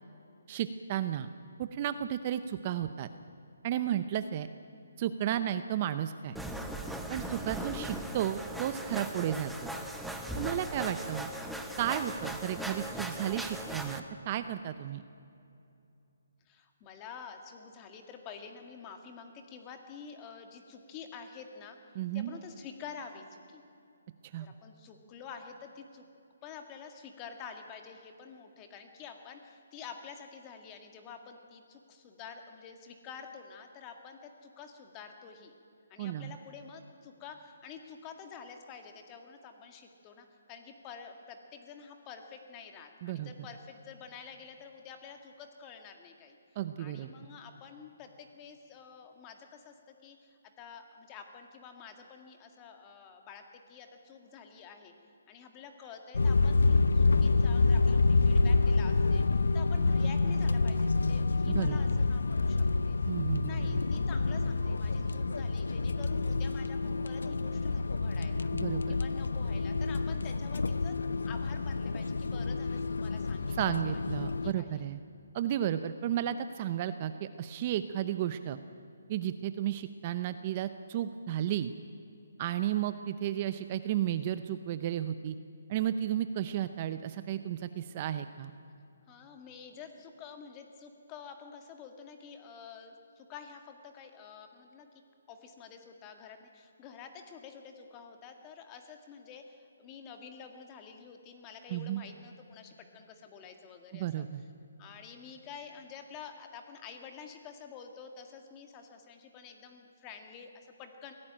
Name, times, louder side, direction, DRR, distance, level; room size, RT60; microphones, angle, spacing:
voice 1, 0.5-1.3 1.6-3.1 3.6-4.5 5.0-6.4 7.1-9.7 10.3-11.3 11.8-15.0 21.9-22.4 24.2-24.5 36.0-36.3 43.0-43.5 46.6-47.1 61.5-62.0 63.1-63.8 68.5-69.0 73.6-75.0 75.3-78.6 79.1-81.7 82.4-85.4 85.7-88.5 101.7-102.0 103.9-104.4, right 11 dB, 30° right, 11 dB, 0.7 m, -33 dB
sound 1, 6.4-14.0, right 1 dB, ahead, 1.0 m, -39 dB
voice 2, 16.5-23.6 24.4-26.0 26.4-35.5 35.9-46.4 46.8-54.9 55.3-63.0 63.4-68.5 68.9-71.0 71.3-73.6 73.9-74.0 74.4-74.9 89.1-94.9 95.3-104.2 104.8-111.1, left 6 dB, 20° left, 5 dB, 2.0 m, -49 dB
sound 2, 56.1-74.5, left 3 dB, 85° left, 0.7 m, -28 dB
23.5 x 16.5 x 8.9 m, 2.7 s
hypercardioid pair, 165°, 0 cm